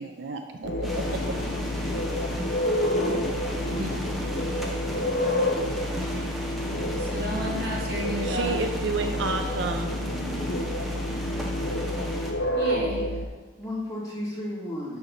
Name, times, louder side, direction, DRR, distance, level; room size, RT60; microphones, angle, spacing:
voice 1, 0.0-1.4 3.5-3.6 5.2-5.4 5.7-6.3 8.2-9.9, right 3 dB, 75° right, 5 dB, 0.5 m, -32 dB
sound 1, 0.6-13.3, left 1 dB, 60° left, 0.6 m, -29 dB
sound 2, 0.8-12.3, equal, ahead, 0.7 m, -35 dB
voice 2, 3.5-4.5 13.2-15.0, left 1 dB, 20° left, -8 dB, 2.1 m, -35 dB
voice 3, 7.1-8.5 12.5-13.2, right 1 dB, 55° right, -3 dB, 1.6 m, -32 dB
7.3 x 5.8 x 4.0 m, 1.3 s
head